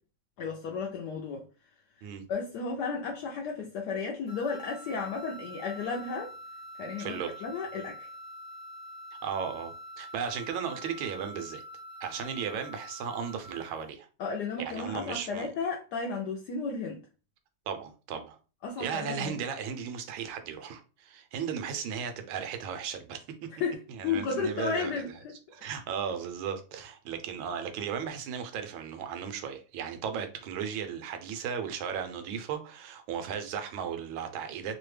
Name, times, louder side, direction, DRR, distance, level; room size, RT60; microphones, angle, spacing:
voice 1, 0.4-1.5 2.3-6.3 6.8-8.1 14.2-17.0 18.6-19.4 23.5-25.3, left 5 dB, 75° left, 0.9 m, -33 dB
sound 1, 4.3-13.8, equal, 20° left, 0.7 m, -45 dB
voice 2, 7.0-7.4 9.2-11.6 12.0-14.1 14.6-15.5 17.7-18.4 18.8-23.2 24.0-24.9 25.5-34.8, right 7 dB, 80° right, 1.4 m, -35 dB
3.4 x 2.1 x 3.1 m
omnidirectional pair, 2.2 m